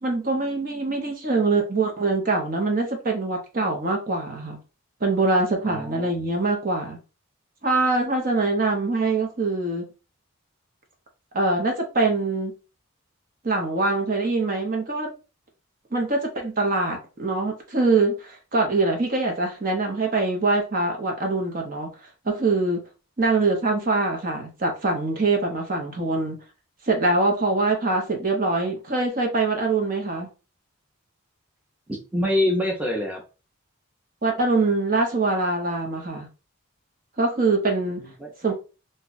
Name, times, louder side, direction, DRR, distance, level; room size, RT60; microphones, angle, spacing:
voice 1, 0.0-4.6 5.0-7.0 7.6-9.9 11.3-12.5 13.4-15.1 15.9-21.9 22.2-22.8 23.2-26.4 26.8-30.3 34.2-36.3 37.2-38.0 38.4-38.5, right 3 dB, 40° right, 0.8 m, -23 dB
voice 2, 5.7-6.1 31.9-33.2 38.0-38.3, left 1 dB, 5° right, 0.6 m, -25 dB
2.7 x 2.3 x 3.9 m
head